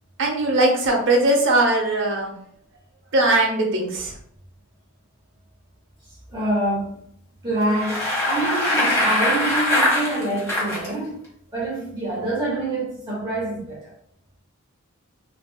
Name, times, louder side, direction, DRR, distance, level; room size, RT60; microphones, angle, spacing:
voice 1, 0.2-2.3 3.1-4.1, right 2 dB, 60° right, 0.8 m, -20 dB
voice 2, 6.3-7.0 7.4-11.2 11.5-13.9, right 2 dB, 20° right, 0.9 m, -26 dB
Bicycle, 7.6-10.9, left 1 dB, 15° left, 1.0 m, -22 dB
3.4 x 2.6 x 2.2 m
head